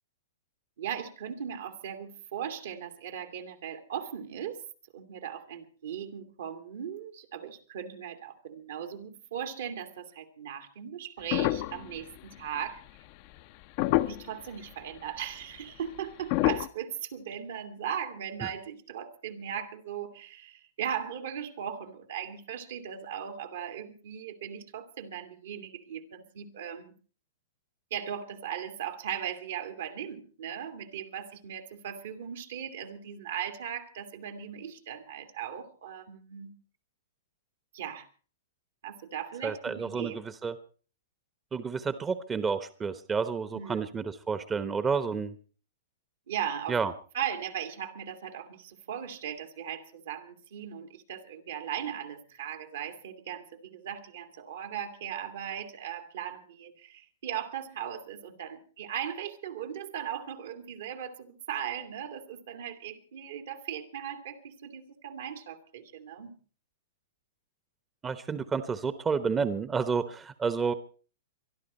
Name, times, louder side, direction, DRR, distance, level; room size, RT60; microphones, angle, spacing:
voice 1, 0.8-4.6 4.9-12.8 14.0-26.9 27.9-36.5 37.7-38.1 38.8-40.2 43.5-43.8 46.3-46.8 47.1-66.3, right 9 dB, 70° right, 7 dB, 2.3 m, -38 dB
sound 1, 11.3-12.6 13.4-13.5 13.8-14.4 15.2-15.3 16.3-16.7, left 17 dB, 50° left, 0.7 m, -27 dB
voice 2, 39.4-40.5 41.5-45.3 46.7-46.9 68.0-70.7, right 5 dB, 20° right, 12 dB, 1.0 m, -30 dB
24.0 x 11.5 x 4.3 m, 0.39 s
hypercardioid pair, 115°, 0 cm